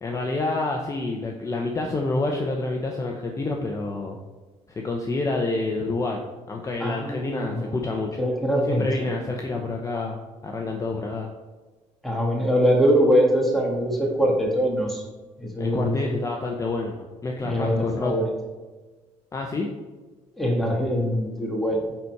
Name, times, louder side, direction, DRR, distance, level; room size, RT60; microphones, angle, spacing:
voice 1, 0.0-4.2 4.7-8.2 8.7-10.2 10.4-11.3 15.6-18.1 19.3-19.7, left 2 dB, 25° left, 1 dB, 0.9 m, -28 dB
voice 2, 6.8-7.7 8.2-8.8 9.2-9.3 12.0-15.0 15.4-16.0 17.4-18.2 20.4-21.9, equal, ahead, -2 dB, 2.0 m, -23 dB
10.0 x 4.2 x 4.7 m, 1.3 s
cardioid pair, 115°, 12 cm